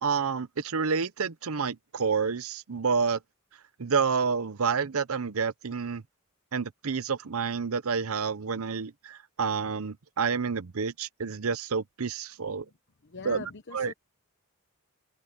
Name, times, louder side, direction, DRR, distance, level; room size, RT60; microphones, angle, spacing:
voice 1, 0.0-3.2 3.8-6.0 6.5-12.6 13.2-13.4 13.7-13.9, right 5 dB, 70° right, 0.7 m, -29 dB
voice 2, 13.0-13.9, left 4 dB, 55° left, 0.9 m, -42 dB
head